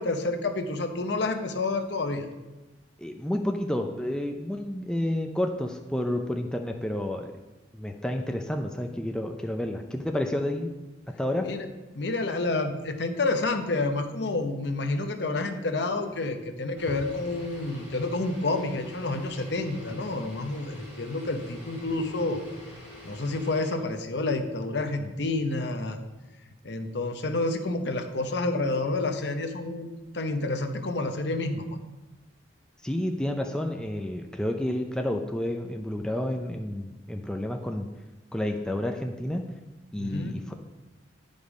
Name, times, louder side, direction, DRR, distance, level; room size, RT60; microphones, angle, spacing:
voice 1, 0.0-2.3 11.4-11.7 11.9-22.4 23.0-26.0 26.6-31.7 40.0-40.3, left 2 dB, 65° left, 6 dB, 0.8 m, -29 dB
voice 2, 3.0-7.3 7.7-10.7 11.2-11.5 32.8-37.9 38.3-39.5 39.9-40.5, left 1 dB, 5° left, 3 dB, 0.4 m, -30 dB
sound 1, 16.8-23.8, left 1 dB, 10° right, 2.6 m, -45 dB
9.8 x 5.3 x 5.0 m, 1.1 s
head